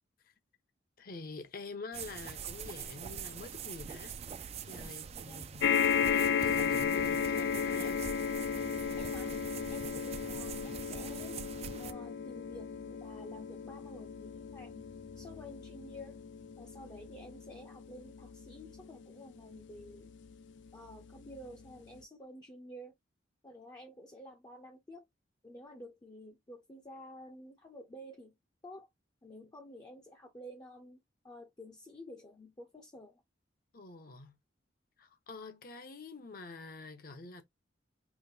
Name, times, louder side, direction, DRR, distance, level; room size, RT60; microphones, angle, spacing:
voice 1, 1.0-8.0 33.7-34.4 35.0-37.4, left 3 dB, 50° left, 0.8 m, -47 dB
sound 1, 1.9-11.9, right 7 dB, 35° right, 0.3 m, -44 dB
voice 2, 5.0-5.5 9.0-9.4 9.7-11.4 11.8-14.9 15.2-16.2 16.6-20.1 20.7-22.9 23.4-25.1 25.4-28.4 28.6-28.9 29.2-31.0 31.2-33.2, left 1 dB, 20° left, 0.6 m, -51 dB
sound 2, 5.6-20.2 20.9-21.0 21.3-21.4, left 7 dB, 75° left, 0.4 m, -34 dB
5.0 x 2.1 x 2.7 m
head